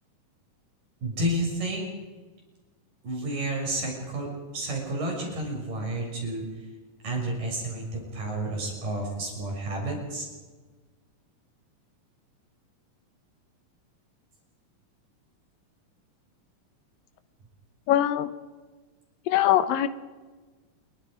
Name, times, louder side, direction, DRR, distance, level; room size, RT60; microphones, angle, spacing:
voice 1, 1.0-1.9 3.0-6.6 7.0-10.3, right 1 dB, 75° right, 0 dB, 8.3 m, -31 dB
voice 2, 17.9-18.3 19.3-19.9, left 12 dB, 85° left, 11 dB, 2.8 m, -22 dB
28.5 x 22.5 x 5.2 m, 1.3 s
omnidirectional pair, 3.9 m